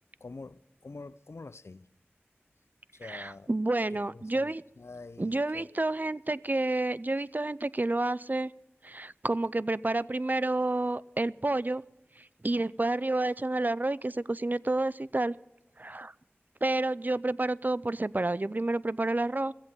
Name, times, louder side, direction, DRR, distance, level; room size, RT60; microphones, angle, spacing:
voice 1, 0.2-1.9 2.9-3.5 4.1-5.8, left 3 dB, 90° left, 0.5 m, -46 dB
voice 2, 3.1-4.6 5.2-8.5 8.8-11.8 12.2-15.4 15.8-16.1 16.6-19.5, right 2 dB, 45° right, 0.5 m, -29 dB
16.0 x 14.5 x 5.5 m
wide cardioid pair, 45°, 4 cm